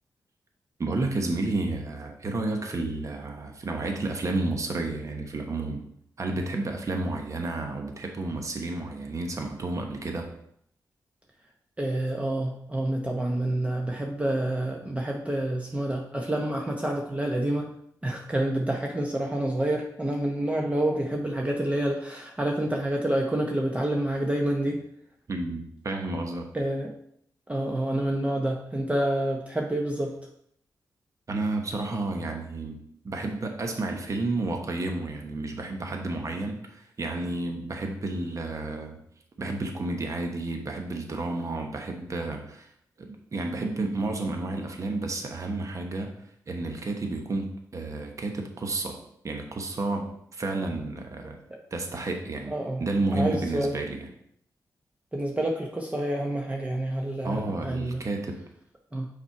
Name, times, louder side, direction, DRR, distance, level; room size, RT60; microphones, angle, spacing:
voice 1, 0.8-5.9 6.2-10.3 25.3-26.5 31.3-32.8 33.0-39.0 39.4-42.7 43.0-46.1 46.5-49.0 49.2-51.4 51.7-52.5 52.8-54.1 57.2-58.4, right 2 dB, 50° right, 3 dB, 1.1 m, -31 dB
voice 2, 11.8-17.7 18.0-24.8 26.5-26.9 27.5-30.1 51.2-51.3 52.5-52.8 53.1-53.7 55.1-58.0 58.9-59.1, right 1 dB, 20° right, 0 dB, 0.9 m, -28 dB
5.7 x 4.3 x 4.5 m, 0.69 s
cardioid pair, 70°, 7 cm